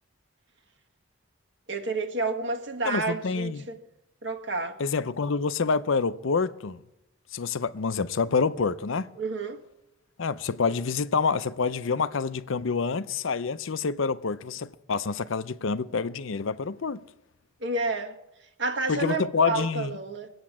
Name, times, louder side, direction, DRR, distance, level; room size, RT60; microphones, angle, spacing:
voice 1, 1.7-3.8 4.2-4.8 9.2-9.6 17.6-18.1 18.6-20.3, right 3 dB, 55° right, 1.6 m, -30 dB
voice 2, 2.8-3.7 4.8-6.8 7.3-9.1 10.2-17.0 18.9-19.9, left 5 dB, 70° left, 0.6 m, -27 dB
22.0 x 8.8 x 7.3 m
head